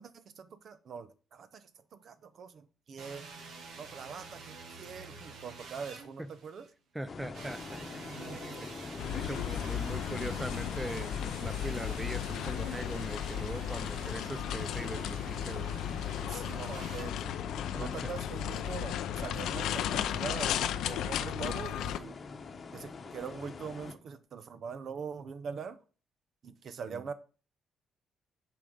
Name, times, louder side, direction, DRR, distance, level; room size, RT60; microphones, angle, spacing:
voice 1, 0.0-3.3 3.8-6.7 8.2-8.6 16.3-17.3 17.7-20.5 20.8-22.2 22.7-25.8 26.4-27.1, right 6 dB, 60° right, 0.8 m, -43 dB
sound 1, 3.0-6.7 7.3-17.0, right 4 dB, 75° right, 1.7 m, -48 dB
voice 2, 6.9-7.8 8.6-8.7 9.1-15.7 17.8-17.9 19.5-19.8, right 1 dB, 10° right, 0.6 m, -41 dB
sound 2, 7.1-23.9, left 4 dB, 45° left, 0.9 m, -45 dB
sound 3, 9.0-22.0, left 10 dB, 85° left, 0.5 m, -35 dB
7.5 x 4.8 x 5.2 m
cardioid pair, 90°, 0 cm